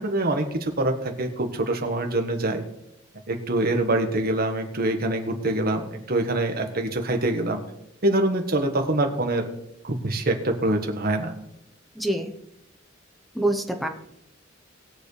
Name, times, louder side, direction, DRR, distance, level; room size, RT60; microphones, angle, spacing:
voice 1, 0.0-2.6 3.3-7.6 8.0-9.4 9.8-11.3, right 2 dB, 50° right, 4 dB, 1.5 m, -25 dB
voice 2, 11.9-12.3 13.3-13.9, right 1 dB, ahead, 5 dB, 0.9 m, -25 dB
20.5 x 7.2 x 3.3 m, 0.80 s
head